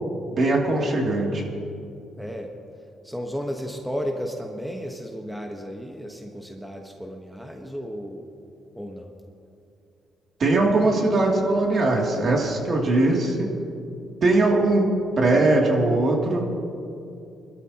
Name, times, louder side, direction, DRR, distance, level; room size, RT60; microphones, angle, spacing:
voice 1, 0.4-1.4 10.4-13.5 14.2-14.9 15.2-16.5, right 2 dB, 50° right, -1 dB, 2.8 m, -20 dB
voice 2, 2.2-2.5 3.0-8.3 8.7-9.1, equal, ahead, 1 dB, 1.2 m, -33 dB
23.0 x 13.0 x 3.0 m, 2.6 s
cardioid pair, 90°, 0 cm